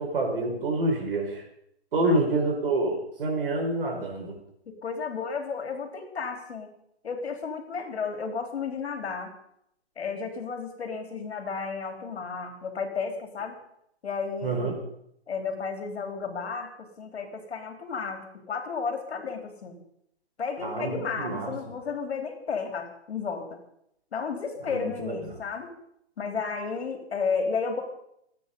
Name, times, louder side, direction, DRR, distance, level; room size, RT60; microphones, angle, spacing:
voice 1, 0.0-1.4 1.9-4.4 14.4-14.8 20.6-21.5 24.7-25.2, right 2 dB, 55° right, 1 dB, 5.7 m, -27 dB
voice 2, 4.7-6.7 7.0-9.3 10.0-13.6 14.0-14.8 15.3-19.8 20.4-23.6 24.1-25.7 26.2-27.8, left 5 dB, 70° left, 5 dB, 3.8 m, -33 dB
27.5 x 9.5 x 5.4 m, 0.75 s
hypercardioid pair, 175°, 34 cm